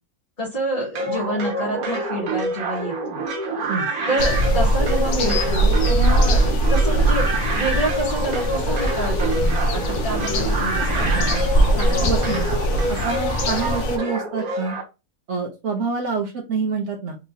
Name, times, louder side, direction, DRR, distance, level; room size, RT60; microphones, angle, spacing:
voice 1, 0.4-3.2 4.1-12.5, right 1 dB, 30° left, -7 dB, 2.0 m, -28 dB
sound 1, 1.0-14.8, right 2 dB, 85° right, 1.4 m, -27 dB
sound 2, 4.2-14.0, right 1 dB, 60° left, 1.0 m, -21 dB
voice 2, 10.9-11.3 11.9-12.5 12.9-14.8 15.3-17.2, right 4 dB, 60° right, -1 dB, 1.1 m, -27 dB
4.1 x 3.5 x 2.7 m, 0.27 s
omnidirectional pair, 1.5 m